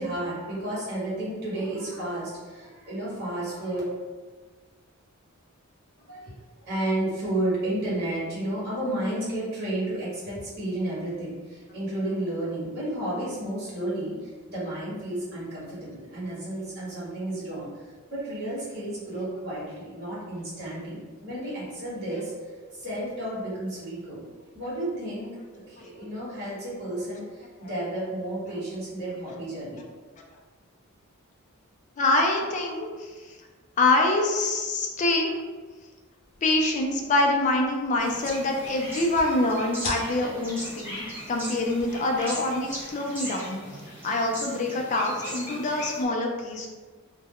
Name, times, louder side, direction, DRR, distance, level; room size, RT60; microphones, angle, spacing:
voice 1, 0.0-3.8 6.0-17.8 18.1-22.3 22.7-24.3 24.5-25.4 25.7-29.8, right 1 dB, 50° right, -9 dB, 1.1 m, -32 dB
voice 2, 32.0-33.3 33.8-35.3 36.4-43.6 44.0-46.7, left 2 dB, 35° left, 1 dB, 0.3 m, -25 dB
sound 1, 36.2-42.9, left 2 dB, 75° left, 0.7 m, -44 dB
sound 2, 38.0-46.1, equal, 10° right, 0.6 m, -39 dB
2.2 x 2.0 x 3.5 m, 1.4 s
head